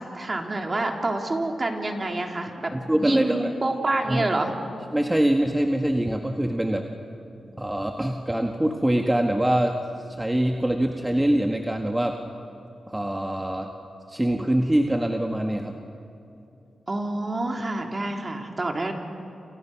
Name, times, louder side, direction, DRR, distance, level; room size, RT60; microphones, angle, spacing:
voice 1, 0.0-4.5 16.9-18.9, right 2 dB, 35° right, 2 dB, 3.5 m, -27 dB
voice 2, 2.7-3.5 4.0-4.2 4.9-6.8 7.6-9.8 10.2-12.2 12.9-13.7 14.1-15.7, right 1 dB, 15° right, 3 dB, 1.8 m, -24 dB
29.0 x 29.0 x 6.2 m, 2.7 s
cardioid pair, 65°, 0 cm